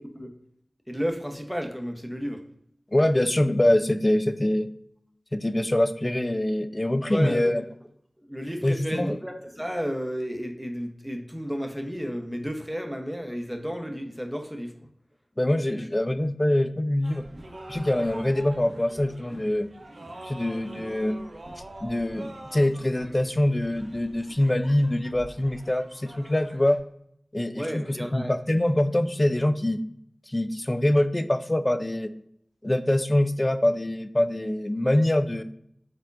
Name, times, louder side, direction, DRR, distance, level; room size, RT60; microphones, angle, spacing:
voice 1, 0.9-2.4 7.1-7.5 8.2-14.7 27.5-28.3, equal, 5° right, 4 dB, 0.8 m, -32 dB
voice 2, 2.9-4.7 5.3-7.6 8.6-9.2 15.4-17.3 17.7-19.7 20.2-21.2 21.8-26.8 27.3-29.8 30.3-32.1 32.6-35.4, left 1 dB, 30° left, 10 dB, 0.3 m, -24 dB
sound 1, 17.0-26.8, right 1 dB, 80° right, 0.5 m, -44 dB
4.5 x 3.6 x 2.5 m, 0.70 s
wide cardioid pair, 45°, 0 cm